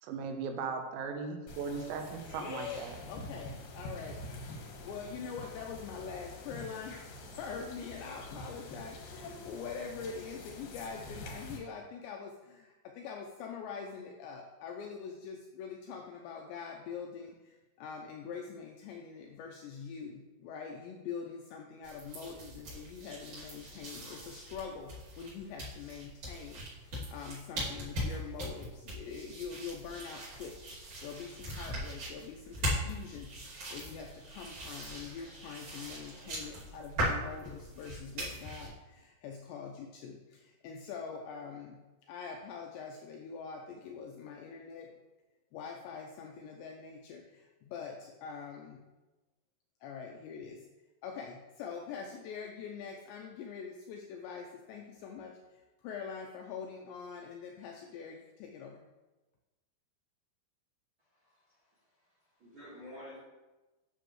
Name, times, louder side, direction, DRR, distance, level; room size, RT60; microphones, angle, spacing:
voice 1, 0.0-3.0, right 5 dB, 90° right, 4 dB, 3.6 m, -38 dB
Quiet forest ambience some distant birds, 1.5-11.6, left 1 dB, 70° left, 2.2 m, -46 dB
voice 2, 2.3-2.8 3.1-44.9 45.5-48.9 49.8-50.7 51.0-58.8, left 6 dB, 90° left, 2 dB, 2.5 m, -44 dB
sound 1, 21.8-38.7, equal, 45° right, 3.6 m, -40 dB
voice 3, 61.1-63.2, left 1 dB, 65° right, -8 dB, 1.3 m, -51 dB
9.8 x 6.7 x 3.2 m, 1.1 s
omnidirectional pair, 5.8 m